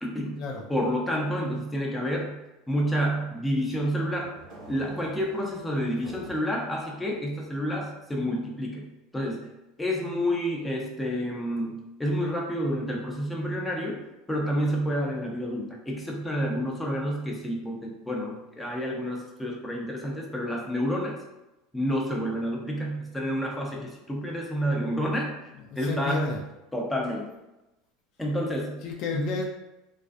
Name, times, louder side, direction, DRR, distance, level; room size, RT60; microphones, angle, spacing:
voice 1, 0.0-0.4 0.7-2.4 2.7-4.3 4.7-8.9 9.1-9.4 9.8-14.0 14.3-21.2 21.7-25.3 25.7-26.4 26.7-27.3 28.2-28.8 29.1-29.4, equal, 10° left, -2 dB, 0.6 m, -29 dB
sound 1, 3.5-6.5 7.0-7.9, right 2 dB, 55° right, 1.0 m, -49 dB
voice 2, 25.7-26.4 28.8-29.5, left 5 dB, 55° left, 0 dB, 0.4 m, -32 dB
2.4 x 2.3 x 2.4 m, 0.96 s
supercardioid pair, 100°, 0 cm